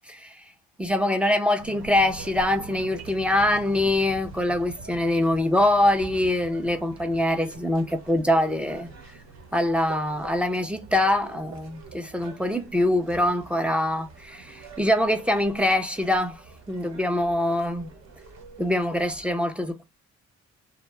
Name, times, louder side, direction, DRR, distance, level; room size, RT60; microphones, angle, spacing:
voice 1, 0.1-0.4 0.8-8.9 9.5-17.9 18.6-19.8, left 1 dB, 5° right, 0.4 m, -24 dB
sound 1, 1.6-19.3, right 4 dB, 60° right, 1.0 m, -45 dB
2.7 x 2.1 x 3.0 m
cardioid pair, 90°, 30 cm